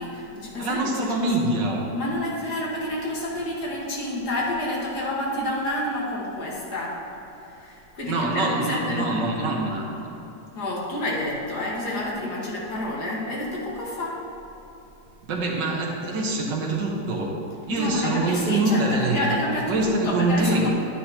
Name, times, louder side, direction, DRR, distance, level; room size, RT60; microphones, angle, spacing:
voice 1, 0.0-0.8 1.9-7.0 7.4-9.2 10.6-14.2 17.7-20.7, left 1 dB, 65° left, -4 dB, 2.2 m, -29 dB
voice 2, 0.6-1.8 8.0-10.1 15.3-17.3 17.7-19.4 19.7-20.7, right 2 dB, 90° right, -1 dB, 1.9 m, -24 dB
11.0 x 9.4 x 2.9 m, 3.0 s
omnidirectional pair, 1.9 m